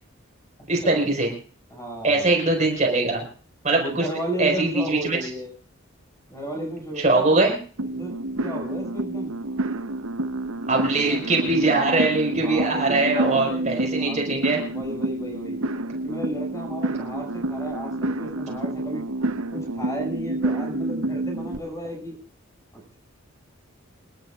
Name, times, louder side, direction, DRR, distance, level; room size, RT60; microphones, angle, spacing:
voice 1, 0.7-1.3 2.0-3.2 3.6-4.1 4.4-5.3 7.0-7.6 10.7-14.6, right 2 dB, 35° right, 0 dB, 4.9 m, -22 dB
voice 2, 1.7-2.4 3.7-5.5 6.3-7.5 8.0-8.1 8.4-9.3 11.0-11.5 12.4-15.6 16.0-19.0 19.5-22.2 22.7-23.0, right 1 dB, 15° left, 2 dB, 6.3 m, -34 dB
sound 1, 7.8-21.6, right 2 dB, 85° right, 0.9 m, -29 dB
28.5 x 11.5 x 2.4 m, 0.41 s
head